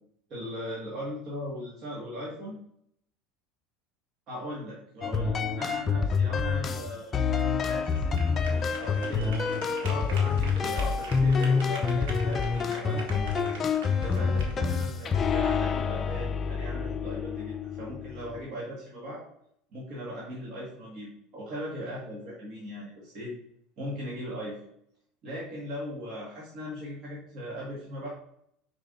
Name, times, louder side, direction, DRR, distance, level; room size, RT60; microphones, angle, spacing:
voice 1, 0.3-2.6 4.3-7.2 7.6-9.3 9.8-13.3 13.9-19.2 19.7-23.3 23.8-24.6 25.2-28.1, equal, 45° right, -5 dB, 1.9 m, -38 dB
sound 1, 5.0-18.4, left 5 dB, 25° left, 0.5 m, -27 dB
sound 2, 6.3-16.3, right 3 dB, 80° right, 1.5 m, -45 dB
5.3 x 4.8 x 3.9 m, 0.72 s
supercardioid pair, 125°, 0 cm